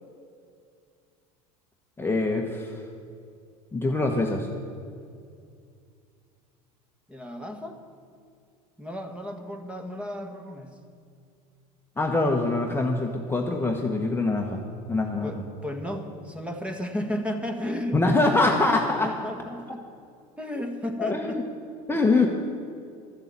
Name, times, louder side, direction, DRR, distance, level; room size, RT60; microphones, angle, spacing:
voice 1, 2.0-2.8 3.7-4.5 12.0-14.6 14.9-15.3 17.9-19.1 21.0-21.4 21.9-22.3, left 2 dB, 10° left, 1 dB, 1.1 m, -24 dB
voice 2, 7.1-7.8 8.8-10.8 15.2-18.8 19.0-19.8 20.4-21.4 22.1-22.3, left 1 dB, 5° right, 4 dB, 1.5 m, -34 dB
13.0 x 6.8 x 8.3 m, 2.4 s
hypercardioid pair, 85°, 19 cm